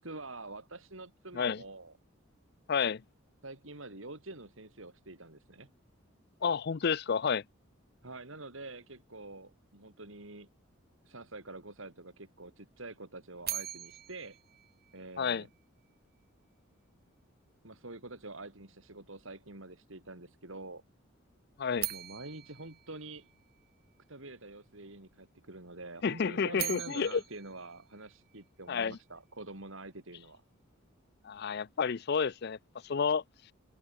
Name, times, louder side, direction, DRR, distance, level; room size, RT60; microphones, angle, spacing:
voice 1, 0.0-1.9 3.4-5.7 8.0-10.5 11.0-14.4 14.9-15.5 17.6-20.8 21.9-23.3 24.1-30.4, right 2 dB, 70° right, 4.0 m, -46 dB
voice 2, 2.7-3.0 6.4-7.4 15.2-15.4 21.6-21.9 26.0-27.2 28.7-29.0 31.2-32.6 32.8-33.2, left 6 dB, 50° left, 0.5 m, -30 dB
sound 1, 13.4-15.6 21.7-23.9 26.3-28.7, right 14 dB, 50° right, 7.1 m, -42 dB
head